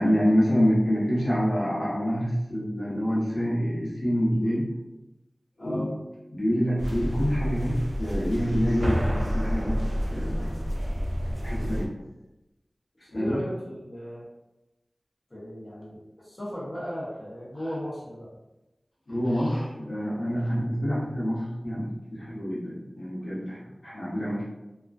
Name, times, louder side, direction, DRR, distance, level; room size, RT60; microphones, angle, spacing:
voice 1, 0.0-4.7 5.6-5.9 6.3-10.6 11.4-11.9 13.1-13.4 19.1-24.4, equal, 80° left, -8 dB, 0.9 m, -27 dB
voice 2, 5.6-5.9 13.0-14.3 15.3-18.3, equal, 40° left, -7 dB, 0.8 m, -36 dB
sound 1, 6.8-11.9, equal, 50° right, 0.4 m, -29 dB
2.4 x 2.2 x 2.3 m, 0.99 s
wide cardioid pair, 45°, 0 cm